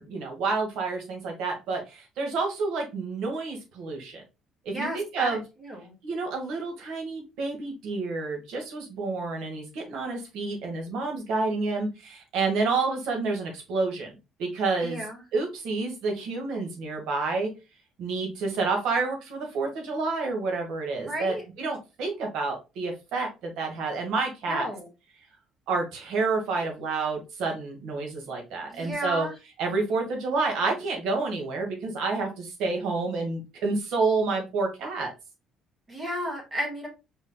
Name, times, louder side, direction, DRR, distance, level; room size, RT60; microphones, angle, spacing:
voice 1, 0.0-4.2 4.7-5.4 6.0-14.1 14.4-15.0 15.3-17.5 18.0-24.7 25.7-29.3 29.6-35.1, right 3 dB, 75° right, 2 dB, 1.9 m, -29 dB
voice 2, 4.7-5.9 14.8-15.2 21.0-21.4 24.5-24.9 28.7-29.3 35.9-36.9, equal, 20° right, 0 dB, 1.9 m, -33 dB
4.9 x 4.4 x 2.3 m, 0.27 s
cardioid pair, 120°, 0 cm